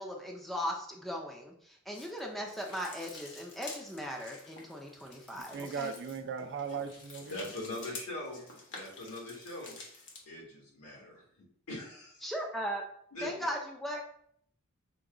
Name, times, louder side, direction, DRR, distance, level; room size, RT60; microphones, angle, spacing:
voice 1, 0.0-6.0 12.2-12.9 13.2-14.0, equal, ahead, 0 dB, 0.5 m, -38 dB
sound 1, 1.9-10.2, left 3 dB, 55° left, 1.2 m, -49 dB
voice 2, 5.5-7.5, right 6 dB, 55° right, 7 dB, 0.5 m, -38 dB
voice 3, 7.3-11.2 11.7-12.3 13.1-13.5, left 2 dB, 75° left, -3 dB, 1.7 m, -42 dB
5.9 x 2.3 x 3.7 m, 0.66 s
head